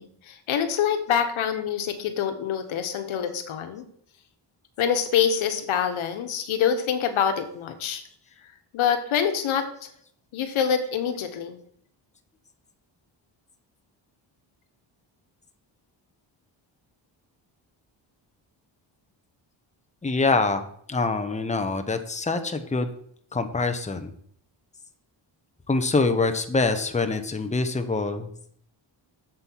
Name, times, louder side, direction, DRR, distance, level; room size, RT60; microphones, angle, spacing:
voice 1, 0.0-3.8 4.8-8.0 8.7-9.9 10.3-11.6, left 8 dB, 85° left, 7 dB, 1.3 m, -25 dB
voice 2, 20.0-22.9 23.3-24.1 25.7-28.3, left 3 dB, 15° left, 8 dB, 1.0 m, -25 dB
7.6 x 7.4 x 4.6 m, 0.63 s
cardioid pair, 85°, 47 cm